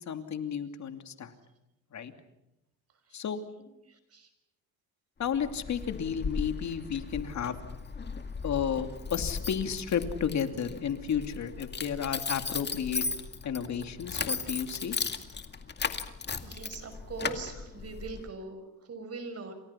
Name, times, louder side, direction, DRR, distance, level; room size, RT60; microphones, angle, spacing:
voice 1, 0.0-1.3 1.9-2.1 3.1-3.4 5.2-7.6 8.4-13.0 13.4-15.0, left 8 dB, 45° left, 8 dB, 2.7 m, -32 dB
voice 2, 3.9-4.3 16.4-19.5, right 4 dB, 40° right, 9 dB, 5.8 m, -41 dB
Keys jangling, 5.2-18.3, left 5 dB, 25° left, 2.1 m, -37 dB
30.0 x 26.5 x 5.8 m, 0.88 s
cardioid pair, 120°, 38 cm